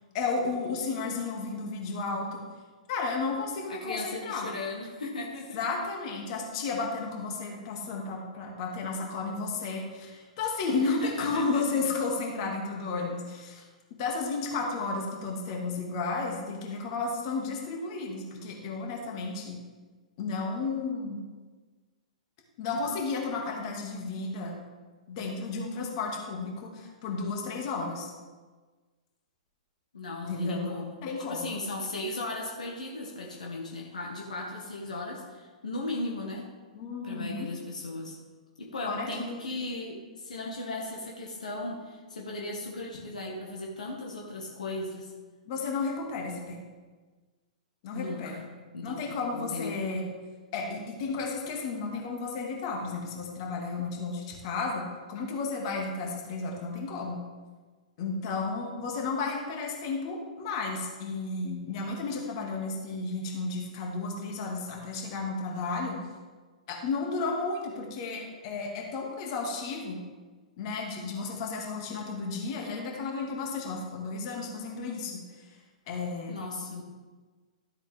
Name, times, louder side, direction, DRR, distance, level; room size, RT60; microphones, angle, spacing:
voice 1, 0.1-2.4 2.9-4.5 5.5-13.6 14.0-19.6 20.2-21.2 22.6-24.6 25.1-28.1 30.2-31.6 36.7-37.5 38.9-39.5 45.5-46.6 47.8-48.4 48.8-50.1 50.5-57.2 58.0-66.0 66.7-70.0 70.6-75.5 75.9-76.4, left 4 dB, 45° left, 0 dB, 2.3 m, -33 dB
voice 2, 3.7-5.6 10.8-11.6 29.9-36.4 37.0-38.2 38.6-45.1 47.9-48.4 48.7-49.0 49.3-50.1 76.3-76.9, left 2 dB, 70° left, -1 dB, 1.8 m, -37 dB
13.0 x 8.0 x 3.6 m, 1.4 s
figure-of-eight pair, 115°, 4 cm